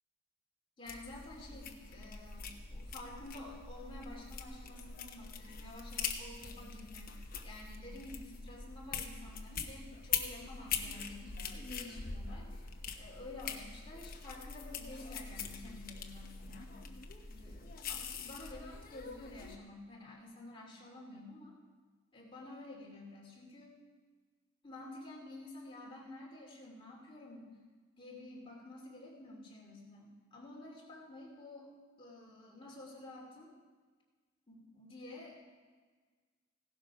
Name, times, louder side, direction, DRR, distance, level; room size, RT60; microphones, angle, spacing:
voice 1, 0.8-7.1 7.4-12.6 13.0-16.8 17.3-21.6 22.1-23.7 24.6-27.5 28.0-31.7 32.0-33.5 34.5-35.4, left 2 dB, 25° left, -2 dB, 2.7 m, -50 dB
sound 1, 0.9-19.6, left 6 dB, 40° left, 1.0 m, -43 dB
16.5 x 12.0 x 4.9 m, 1.5 s
head